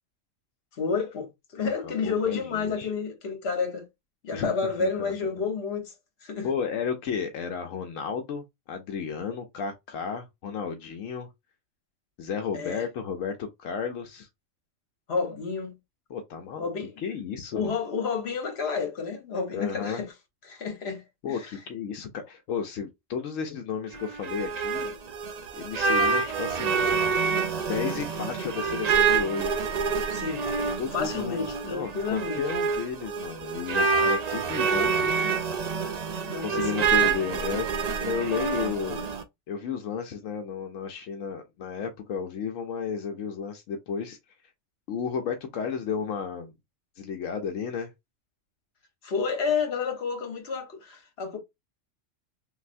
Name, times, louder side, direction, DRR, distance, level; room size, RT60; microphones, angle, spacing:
voice 1, 0.7-3.9 4.2-5.9 6.2-6.5 12.5-12.8 15.1-15.8 16.6-16.9 17.5-20.1 20.5-21.0 21.3-21.5 30.1-30.4 30.9-32.4 36.2-37.1 49.0-51.4, left 5 dB, 55° left, 1.2 m, -30 dB
voice 2, 1.6-2.9 4.3-5.1 6.4-11.3 12.2-14.3 16.1-16.7 17.0-17.7 19.5-20.0 21.2-24.9 25.6-26.8 27.6-29.6 30.8-35.1 36.4-39.1 39.5-44.2 44.9-46.5 47.0-47.9, left 6 dB, 80° left, 1.0 m, -33 dB
sound 1, 23.9-39.2, right 5 dB, 85° right, 0.3 m, -27 dB
3.2 x 2.6 x 2.5 m
omnidirectional pair, 1.3 m